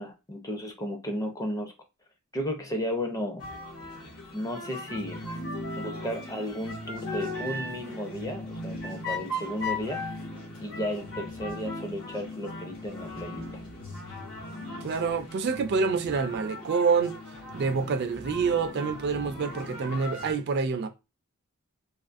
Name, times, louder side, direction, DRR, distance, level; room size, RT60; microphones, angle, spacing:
voice 1, 0.0-1.7 2.3-3.4 4.3-5.2 5.8-10.0 10.6-13.5, equal, 15° left, 0.5 m, -34 dB
sound 1, 3.4-20.3, left 1 dB, 70° left, 1.1 m, -38 dB
voice 2, 14.8-17.2 17.5-20.9, right 5 dB, 50° right, 0.3 m, -27 dB
2.5 x 2.4 x 2.4 m
head